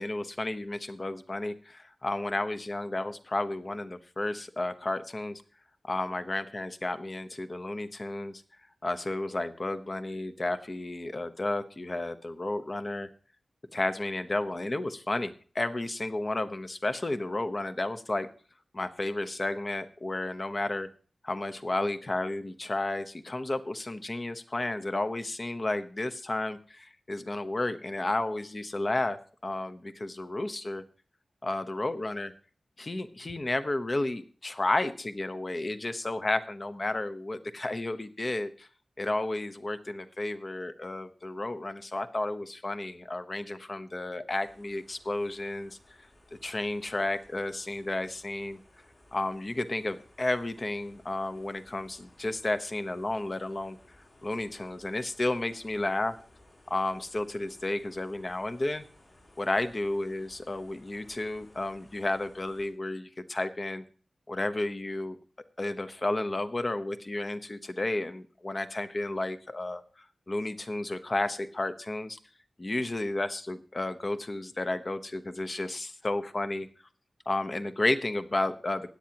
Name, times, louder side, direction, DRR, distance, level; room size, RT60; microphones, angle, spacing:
voice 1, 0.0-5.4 5.8-8.4 8.8-13.1 13.7-18.3 18.7-20.9 21.2-30.8 31.4-32.3 32.8-38.7 39.0-46.1 46.4-48.6 49.1-53.8 54.2-56.2 56.7-58.8 59.4-63.8 64.3-65.2 65.6-72.2 72.6-76.7 77.3-78.9, left 2 dB, 35° left, 10 dB, 0.9 m, -32 dB
sound 1, 44.3-62.7, left 1 dB, 55° left, 6.2 m, -59 dB
16.5 x 10.5 x 2.9 m, 0.42 s
wide cardioid pair, 110°, 0 cm